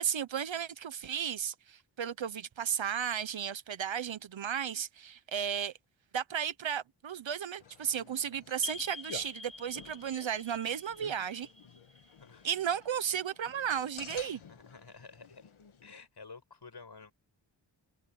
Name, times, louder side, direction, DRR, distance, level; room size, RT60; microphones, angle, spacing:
voice 1, 0.0-5.7 6.1-11.5 12.4-14.4, right 8 dB, 70° right, 1.0 m, -34 dB
sound 1, 7.6-15.9, left 7 dB, 80° left, 1.7 m, -52 dB
sound 2, 8.6-13.1, left 4 dB, 30° left, 5.4 m, -47 dB
voice 2, 14.5-15.4 15.8-17.1, left 4 dB, 55° left, 6.5 m, -51 dB
wide cardioid pair, 70°, 48 cm